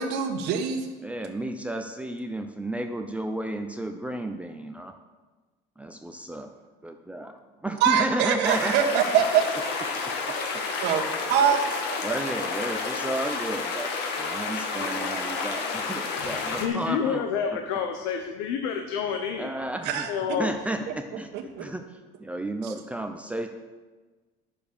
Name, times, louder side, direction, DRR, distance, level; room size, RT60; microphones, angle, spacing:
voice 1, 0.0-0.9 7.8-9.9 10.3-10.4 10.8-11.0 11.3-12.2 19.8-20.4 20.9-21.0 21.3-21.7 22.6-22.7, right 8 dB, 65° right, 3 dB, 1.7 m, -25 dB
voice 2, 1.0-4.9 5.8-6.5 6.8-7.3 7.6-8.7 12.0-17.2 19.4-20.1 20.4-21.3 21.6-21.9 22.2-23.5, right 1 dB, 5° right, 5 dB, 0.7 m, -32 dB
sound 1, 8.4-16.7, left 4 dB, 60° left, 1.8 m, -30 dB
voice 3, 16.6-19.5 20.1-20.8, left 7 dB, 85° left, 5 dB, 1.1 m, -29 dB
9.9 x 7.1 x 6.9 m, 1.3 s
cardioid pair, 125°, 19 cm